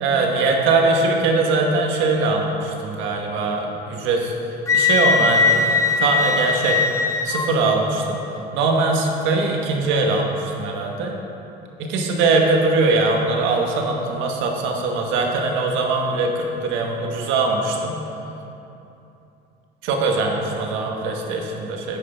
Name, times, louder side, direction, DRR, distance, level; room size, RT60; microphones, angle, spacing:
voice 1, 0.0-4.3 4.7-6.8 7.2-8.2 8.5-11.2 11.8-18.0 19.8-22.0, right 3 dB, 85° right, 1 dB, 1.3 m, -21 dB
Wind instrument woodwind instrument, 4.7-7.5, left 4 dB, 15° left, 0.4 m, -19 dB
9.5 x 9.4 x 3.5 m, 2.9 s
cardioid pair, 170°, 19 cm